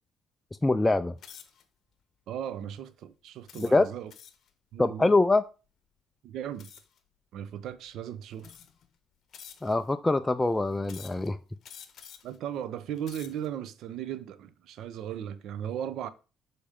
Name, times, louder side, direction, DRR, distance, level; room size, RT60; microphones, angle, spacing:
voice 1, 0.6-1.1 3.6-3.9 4.8-5.4 9.6-11.4, left 2 dB, 10° left, 0.3 m, -24 dB
sound 1, 1.2-1.6 2.3-2.5 3.5-4.5 6.6-7.0 7.8-7.9 8.4-8.9 9.3-9.9 10.8-11.3 11.6-12.4 12.9-13.5, left 8 dB, 55° left, 1.0 m, -49 dB
voice 2, 2.3-4.1 4.7-5.1 6.2-6.7 7.3-8.5 12.2-16.1, right 10 dB, 65° right, 0.7 m, -37 dB
6.6 x 4.3 x 5.0 m
cardioid pair, 100°, 0 cm